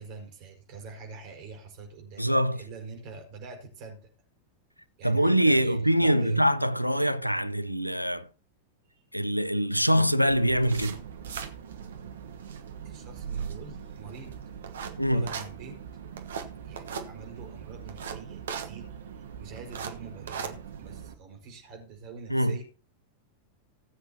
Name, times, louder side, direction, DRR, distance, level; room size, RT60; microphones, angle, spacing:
voice 1, 0.0-4.1 5.0-6.5 8.9-9.0 12.8-14.3 15.1-15.8 16.6-22.6, right 4 dB, 45° right, 5.2 m, -45 dB
voice 2, 2.2-2.6 5.0-8.3 9.1-11.0 15.0-15.3 22.3-22.6, equal, 90° left, 0.6 m, -24 dB
sound 1, 10.3-21.1, right 7 dB, 65° right, 1.2 m, -39 dB
19.0 x 7.9 x 2.9 m
figure-of-eight pair, 90°, 0 cm